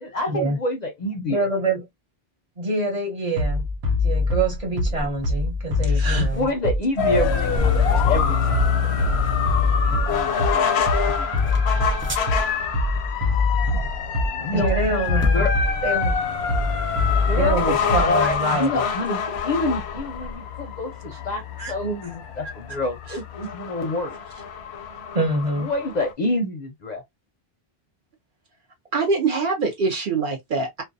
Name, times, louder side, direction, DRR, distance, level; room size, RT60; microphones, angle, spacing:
voice 1, 0.0-1.5 6.1-9.2 9.9-11.6 14.4-14.9 15.3-15.5 16.6-16.7 17.3-24.1 25.6-27.0, left 2 dB, 50° left, 0.6 m, -28 dB
voice 2, 1.3-1.9 2.6-3.7 4.0-6.5 14.4-15.5 15.8-16.2 17.4-18.7 25.1-25.7, right 2 dB, 40° right, 1.1 m, -25 dB
Bass drum, 3.4-18.4, left 2 dB, 80° right, 0.9 m, -23 dB
sound 1, 4.6-20.4, equal, 20° right, 0.4 m, -38 dB
voice 3, 5.9-6.3 21.6-21.7 28.9-30.8, right 4 dB, 60° right, 0.7 m, -24 dB
sound 2, 7.0-26.1, left 7 dB, 90° left, 0.8 m, -26 dB
2.3 x 2.2 x 2.5 m
omnidirectional pair, 1.0 m